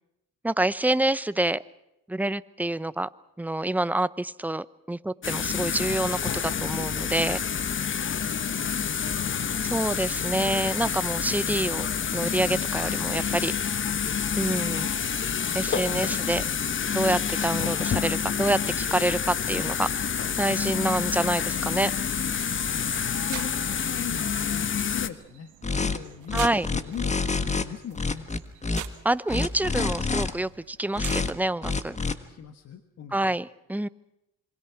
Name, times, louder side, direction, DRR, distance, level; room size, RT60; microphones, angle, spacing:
voice 1, 0.4-1.6 2.1-3.1 3.4-7.4 9.7-11.9 12.1-13.5 14.4-14.9 15.5-16.4 16.9-19.9 20.4-21.9 26.3-26.7 29.0-32.0 33.1-33.9, right 1 dB, 5° right, 15 dB, 0.8 m, -27 dB
sound 1, 5.2-25.1, left 7 dB, 40° left, 1.2 m, -28 dB
voice 2, 7.9-9.3 15.8-16.9 23.1-28.3 32.0-33.4, left 8 dB, 55° left, 7 dB, 1.6 m, -40 dB
sound 2, 19.7-31.5, right 12 dB, 80° right, 1.8 m, -46 dB
sound 3, 25.6-26.0 26.3-27.6 27.9-28.8 29.3-30.3 30.9-31.3 31.6-32.1, left 4 dB, 25° left, 1.5 m, -27 dB
26.5 x 24.0 x 5.9 m, 0.86 s
cardioid pair, 90°, 30 cm